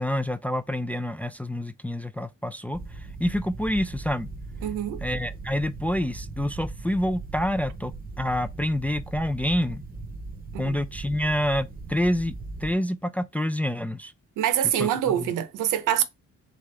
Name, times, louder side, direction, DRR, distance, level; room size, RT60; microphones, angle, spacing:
voice 1, 0.0-2.8 3.2-4.3 5.0-9.8 10.6-12.3 12.6-14.1 14.8-14.9 15.2-15.3, left 1 dB, 5° left, 0.3 m, -27 dB
sound 1, 2.7-12.7, right 3 dB, 30° right, 0.8 m, -39 dB
voice 2, 4.6-5.0 10.5-10.8 14.4-16.0, right 10 dB, 85° right, 0.8 m, -25 dB
3.7 x 3.4 x 3.2 m
cardioid pair, 90°, 30 cm